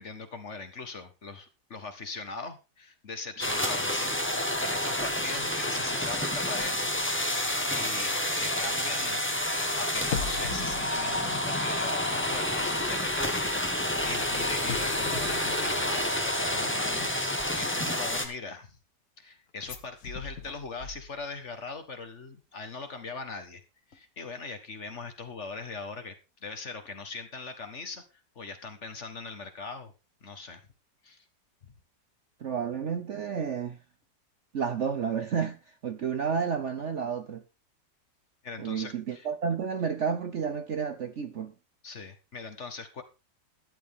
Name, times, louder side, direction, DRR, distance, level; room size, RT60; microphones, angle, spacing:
voice 1, 0.0-7.0 7.4-17.1 17.5-18.8 19.2-23.6 23.9-26.1 26.4-28.0 28.3-29.9 30.2-30.6 31.0-31.2 31.6-31.7 38.4-39.3 41.8-43.0, left 4 dB, 40° left, 1.7 m, -40 dB
sound 1, 3.4-18.3, left 1 dB, 5° left, 1.4 m, -29 dB
sound 2, 10.0-12.3 12.5-12.8 14.1-16.4 19.6-21.5 21.8-21.9, left 6 dB, 55° left, 1.7 m, -40 dB
voice 2, 32.4-33.8 34.5-37.4 38.6-41.5, right 6 dB, 55° right, 0.9 m, -31 dB
12.5 x 11.5 x 3.6 m
omnidirectional pair, 1.9 m